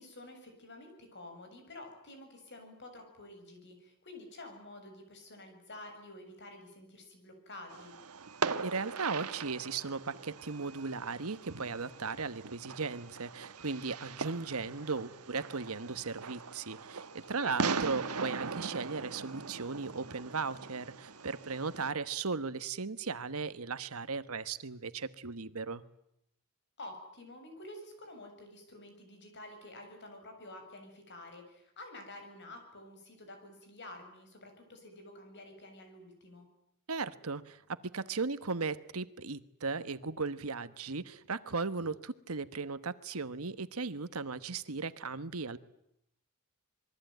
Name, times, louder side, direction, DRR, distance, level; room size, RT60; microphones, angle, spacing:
voice 1, 0.0-7.9 17.2-18.2 26.8-36.5, left 1 dB, 55° left, 6 dB, 7.2 m, -50 dB
Fireworks, 7.7-21.9, right 4 dB, 85° right, 1.3 m, -40 dB
voice 2, 8.6-25.8 36.9-45.6, right 4 dB, 70° right, 13 dB, 1.2 m, -37 dB
27.0 x 22.5 x 9.3 m, 0.76 s
head